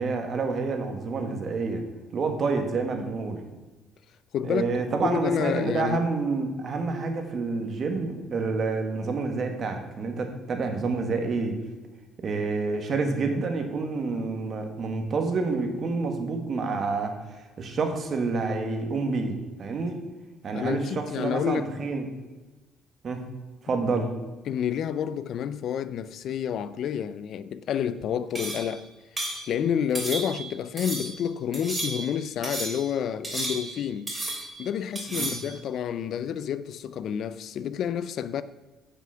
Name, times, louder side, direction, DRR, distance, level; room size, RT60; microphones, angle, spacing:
voice 1, 0.0-1.8 2.1-3.4 4.4-11.5 12.2-20.0 20.4-22.1 23.0-23.3 23.6-24.1 35.2-35.4, right 4 dB, 40° right, 1.5 m, -28 dB
voice 2, 4.3-4.8 5.0-6.0 20.5-21.7 24.5-28.9 29.2-34.1 34.6-38.4, left 8 dB, 60° left, 0.4 m, -29 dB
sound 1, 28.3-28.7 29.2-29.4 29.9-30.5 30.8-31.2 31.5-32.1 32.4-32.9 33.2-33.8 34.1-34.6 34.9-35.5, right 2 dB, 15° right, 2.7 m, -33 dB
9.4 x 6.1 x 5.6 m
cardioid pair, 125°, 0 cm